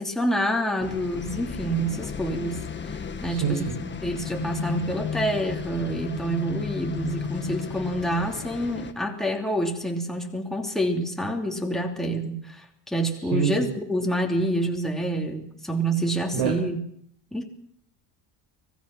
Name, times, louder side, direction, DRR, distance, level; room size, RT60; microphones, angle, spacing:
voice 1, 0.0-2.6 3.2-16.8 17.3-17.4, right 1 dB, ahead, 1 dB, 3.0 m, -27 dB
sound 1, 0.8-8.9, left 6 dB, 25° left, 1.7 m, -34 dB
voice 2, 3.3-3.8 13.3-13.7 16.3-16.5, right 7 dB, 70° right, 0 dB, 6.2 m, -26 dB
25.0 x 17.5 x 6.0 m, 0.68 s
cardioid pair, 140°, 42 cm